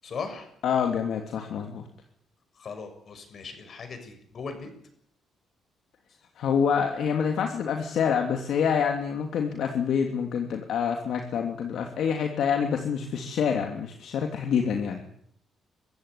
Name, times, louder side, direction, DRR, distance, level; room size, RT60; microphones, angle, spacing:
voice 1, 0.0-0.5 2.6-4.7, left 5 dB, 50° left, 8 dB, 6.8 m, -38 dB
voice 2, 0.6-1.8 6.4-15.0, left 7 dB, 70° left, 4 dB, 2.9 m, -27 dB
24.5 x 15.0 x 9.9 m, 0.68 s
cardioid pair, 90°, 0 cm